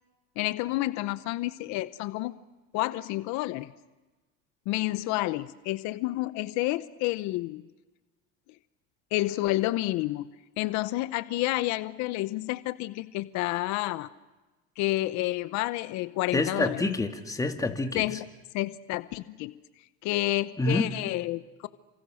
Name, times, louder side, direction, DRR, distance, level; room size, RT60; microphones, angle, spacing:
voice 1, 0.4-2.3 2.7-3.7 4.7-7.6 9.1-10.3 10.6-14.1 14.8-16.8 17.9-18.3 18.5-19.5 20.0-21.7, left 18 dB, 70° left, 14 dB, 0.9 m, -29 dB
voice 2, 16.3-18.1 20.6-20.9, left 2 dB, 10° left, 5 dB, 2.2 m, -27 dB
30.0 x 26.5 x 6.5 m, 1.2 s
cardioid pair, 125°, 30 cm